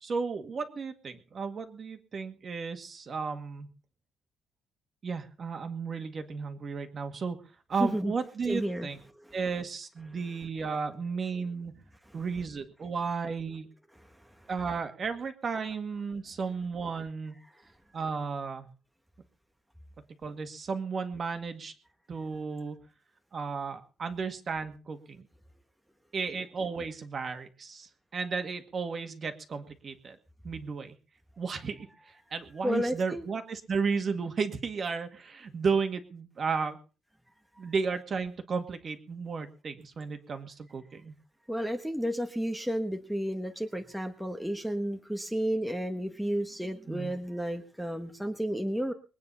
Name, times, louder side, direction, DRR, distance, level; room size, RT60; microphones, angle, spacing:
voice 1, 0.0-3.7 5.0-7.4 7.7-9.0 9.3-11.7 12.1-13.7 14.5-17.4 17.9-18.7 20.2-21.7 22.1-22.8 23.3-25.2 26.1-30.2 30.4-31.0 31.4-31.9 32.3-36.8 37.6-41.1 46.9-47.1, right 5 dB, 30° right, 7 dB, 1.9 m, -34 dB
voice 2, 7.8-8.1 8.5-8.9 9.2-9.4 12.0-12.2 14.0-14.5 17.5-17.7 32.6-33.2 41.5-48.9, equal, ahead, 4 dB, 1.3 m, -32 dB
22.0 x 9.4 x 5.6 m, 0.36 s
cardioid pair, 175°, 0 cm